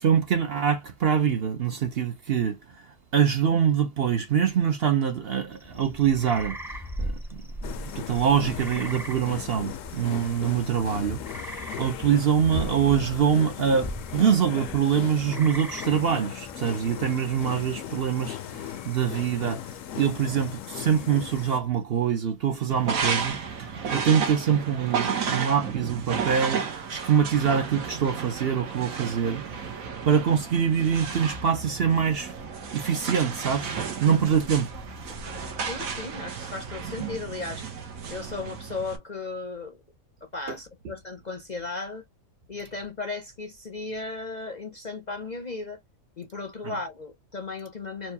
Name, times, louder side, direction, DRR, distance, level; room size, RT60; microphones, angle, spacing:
voice 1, 0.0-2.9 3.1-7.4 7.9-29.4 30.0-32.3 32.7-34.7 46.6-46.7, right 8 dB, 55° right, 0.8 m, -24 dB
sound 1, 5.5-21.8, equal, 5° right, 0.5 m, -40 dB
sound 2, 7.6-21.6, left 11 dB, 70° left, 0.9 m, -38 dB
sound 3, 22.7-39.0, right 6 dB, 75° right, 1.5 m, -33 dB
voice 2, 35.6-37.7 38.1-39.8 40.3-42.0 42.5-45.8 46.2-48.1, left 3 dB, 40° left, 0.7 m, -35 dB
4.6 x 2.3 x 2.8 m
omnidirectional pair, 1.5 m